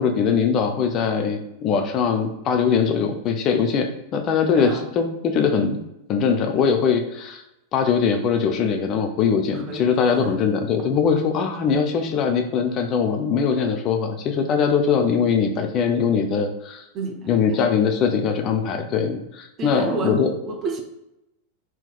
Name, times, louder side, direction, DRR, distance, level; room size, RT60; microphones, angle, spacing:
voice 1, 0.0-5.8 6.1-7.4 7.7-16.9 17.3-20.3, left 6 dB, 35° left, 5 dB, 0.4 m, -21 dB
voice 2, 4.6-4.9 9.5-10.4 16.9-17.5 19.6-20.8, right 3 dB, 30° right, 4 dB, 0.5 m, -31 dB
3.6 x 2.8 x 2.2 m, 0.88 s
figure-of-eight pair, 90°, 0 cm